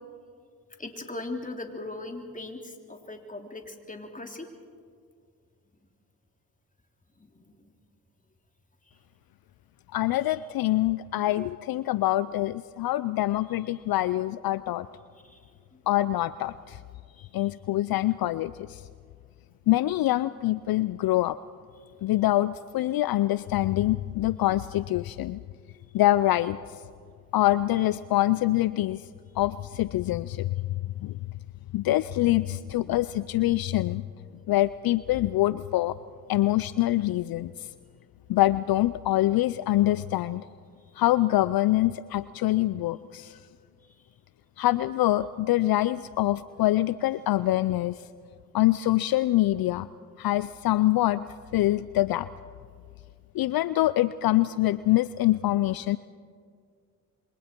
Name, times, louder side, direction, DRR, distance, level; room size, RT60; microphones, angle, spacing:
voice 1, 0.8-4.5 7.2-7.7 15.3-15.4 17.2-17.3, left 2 dB, 20° left, 3 dB, 3.1 m, -39 dB
voice 2, 9.9-14.9 15.9-16.8 17.3-18.9 19.7-21.4 22.0-25.4 25.9-26.8 27.3-29.1 29.4-30.6 30.8-31.2 31.7-34.1 34.5-36.0 36.3-37.7 38.3-40.5 41.0-43.4 44.6-48.1 48.5-49.9 50.2-51.3 51.5-52.3 53.3-56.0, left 15 dB, 70° left, 16 dB, 0.5 m, -25 dB
27.5 x 24.0 x 4.5 m, 2.1 s
supercardioid pair, 55°, 38 cm